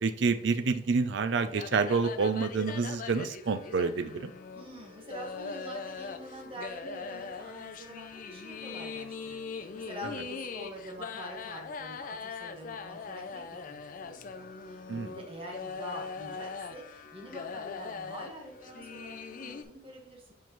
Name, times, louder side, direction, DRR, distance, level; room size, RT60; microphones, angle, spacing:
voice 1, 0.0-4.3 14.9-15.2, right 4 dB, 65° right, 10 dB, 0.5 m, -28 dB
sound 1, 1.5-19.6, left 5 dB, 45° left, 0.4 m, -41 dB
voice 2, 4.5-20.3, equal, 30° right, 0 dB, 1.4 m, -46 dB
7.0 x 4.5 x 3.1 m, 0.71 s
head